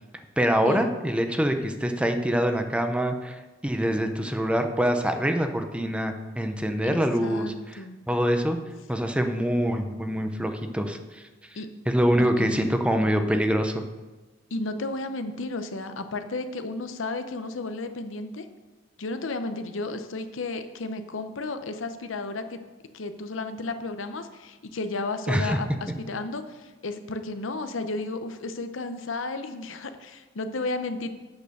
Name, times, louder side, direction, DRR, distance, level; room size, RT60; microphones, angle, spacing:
voice 1, 0.4-3.4 3.6-7.8 8.1-8.6 8.9-11.2 11.9-13.8 25.3-25.6, equal, 5° right, 6 dB, 0.6 m, -25 dB
voice 2, 6.8-8.0 11.5-11.7 12.2-12.6 14.5-18.5 19.0-22.6 22.9-31.1, left 3 dB, 80° left, 9 dB, 0.8 m, -33 dB
8.2 x 6.5 x 6.6 m, 1.2 s
head